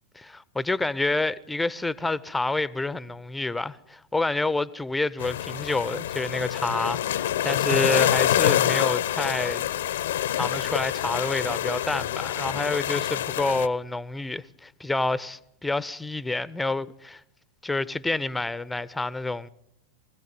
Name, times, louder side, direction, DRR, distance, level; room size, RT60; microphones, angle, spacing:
voice 1, 0.2-9.6 10.3-17.2 17.6-19.5, left 2 dB, 5° left, 0.8 m, -28 dB
sound 1, 5.2-13.7, left 11 dB, 60° left, 0.8 m, -26 dB
25.0 x 16.5 x 9.4 m
figure-of-eight pair, 90°, 0 cm